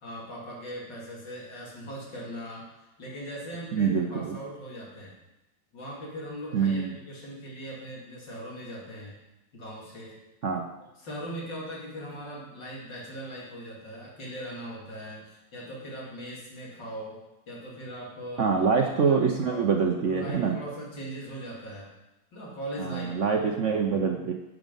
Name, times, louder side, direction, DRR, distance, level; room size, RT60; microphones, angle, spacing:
voice 1, 0.0-5.1 5.7-9.1 9.5-10.2 11.0-17.2 17.5-18.5 19.1-19.2 19.4-19.7 20.1-21.9 22.3-23.3, equal, 80° left, -4 dB, 3.4 m, -40 dB
voice 2, 3.7-4.4 6.5-7.0 10.4-10.7 18.4-20.6 22.8-24.3, right 5 dB, 55° right, 3 dB, 0.9 m, -25 dB
11.5 x 6.3 x 5.4 m, 0.97 s
omnidirectional pair, 2.0 m